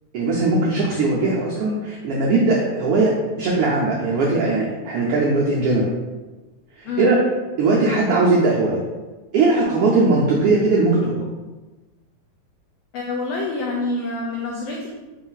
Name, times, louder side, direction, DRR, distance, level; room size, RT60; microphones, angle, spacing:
voice 1, 0.1-5.9 6.8-7.2 7.6-8.8 9.3-11.2, right 3 dB, 85° right, -3 dB, 1.3 m, -19 dB
voice 2, 6.8-7.2 12.9-14.9, left 2 dB, 90° left, -1 dB, 1.4 m, -27 dB
4.7 x 2.6 x 3.9 m, 1.2 s
omnidirectional pair, 3.3 m